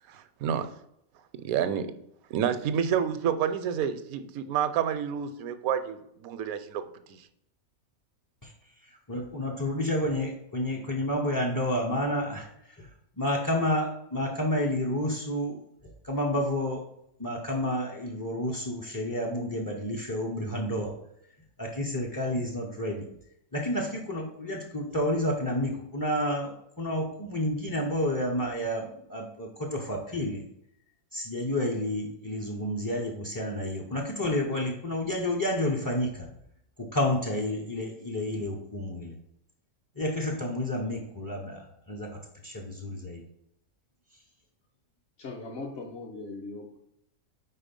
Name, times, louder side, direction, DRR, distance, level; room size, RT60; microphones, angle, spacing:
voice 1, 0.1-0.7 1.4-1.9 2.3-6.8 7.1-7.2, right 8 dB, 80° right, 10 dB, 1.0 m, -29 dB
voice 2, 9.1-12.5 12.8-12.9 13.2-15.6 16.0-16.8 17.2-20.9 21.6-23.0 23.5-30.4 31.1-36.3 36.8-39.1 40.0-42.1 42.4-43.2, left 1 dB, 25° left, 0 dB, 0.4 m, -30 dB
voice 3, 45.2-46.8, left 3 dB, 55° left, -2 dB, 1.0 m, -39 dB
4.7 x 4.1 x 5.2 m, 0.76 s
omnidirectional pair, 1.5 m